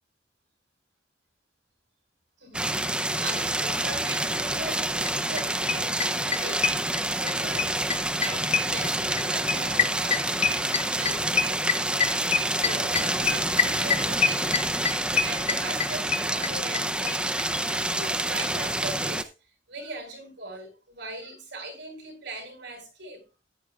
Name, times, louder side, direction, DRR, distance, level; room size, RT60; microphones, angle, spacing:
voice 1, 2.4-7.8 8.1-17.3 17.7-19.3 19.7-23.2, right 2 dB, 75° right, 4.8 m, -40 dB
sound 1, 2.5-19.2, right 1 dB, 5° right, 0.5 m, -28 dB
sound 2, 5.1-5.2 5.4-5.5 5.7-7.3 7.6-16.8 17.1-17.2 17.4-17.5 17.7-17.8, left 6 dB, 35° left, 0.7 m, -25 dB
14.0 x 9.9 x 2.4 m
head